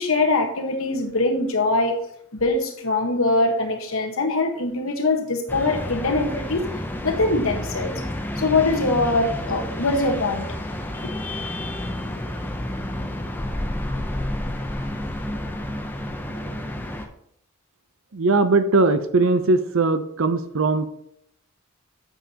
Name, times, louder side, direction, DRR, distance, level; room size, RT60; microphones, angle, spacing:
voice 1, 0.0-2.0 2.3-6.6 7.0-7.9 8.4-10.5, left 2 dB, 65° left, 3 dB, 1.3 m, -22 dB
sound 1, 5.5-17.1, left 1 dB, 10° left, 0.5 m, -30 dB
voice 2, 18.1-20.9, right 3 dB, 60° right, 11 dB, 0.6 m, -20 dB
8.9 x 7.2 x 2.9 m, 0.73 s
head